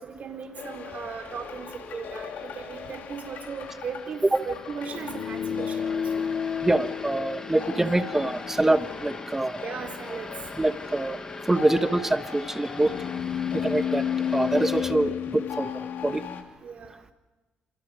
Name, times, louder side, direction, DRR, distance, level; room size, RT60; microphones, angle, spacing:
voice 1, 0.0-6.3 9.6-10.3 12.8-12.9 16.6-17.0, right 5 dB, 50° right, 3 dB, 4.0 m, -37 dB
sound 1, 0.6-16.4, left 8 dB, 70° left, 2.9 m, -33 dB
sound 2, 1.4-14.9, left 2 dB, 15° left, 1.2 m, -43 dB
voice 2, 6.6-9.6 10.6-11.2 11.5-12.9 13.5-14.0 14.3-15.7 16.0-16.2, right 2 dB, 10° right, 9 dB, 1.2 m, -25 dB
28.5 x 27.5 x 5.1 m, 1.2 s
cardioid pair, 110°, 3 cm